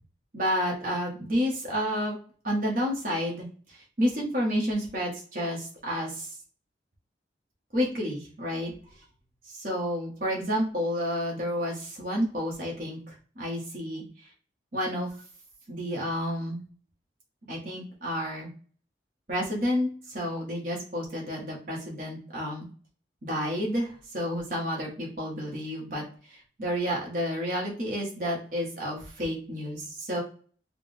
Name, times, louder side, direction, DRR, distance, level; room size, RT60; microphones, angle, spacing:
voice 1, 0.3-2.2 2.4-6.3 7.7-8.7 9.5-14.0 14.7-15.1 15.7-16.6 17.5-18.5 19.3-19.9 20.1-22.7 23.2-30.2, equal, 50° right, -2 dB, 1.4 m, -30 dB
4.8 x 2.4 x 3.4 m, 0.43 s
head